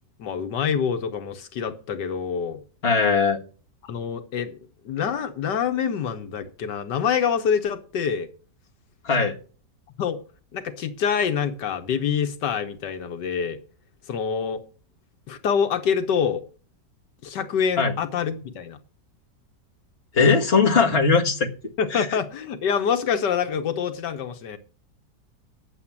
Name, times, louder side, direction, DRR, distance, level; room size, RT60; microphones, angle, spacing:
voice 1, 0.2-2.6 3.8-4.6 4.8-8.3 10.0-10.2 10.5-13.6 14.1-14.6 15.3-16.4 17.2-18.8 21.8-24.6, left 7 dB, 85° left, 8 dB, 1.7 m, -26 dB
voice 2, 2.8-3.4 9.0-9.4 17.8-17.9 20.1-21.5 21.9-22.1, left 5 dB, 35° left, 1 dB, 1.9 m, -19 dB
10.0 x 7.9 x 7.2 m, 0.39 s
omnidirectional pair, 1.8 m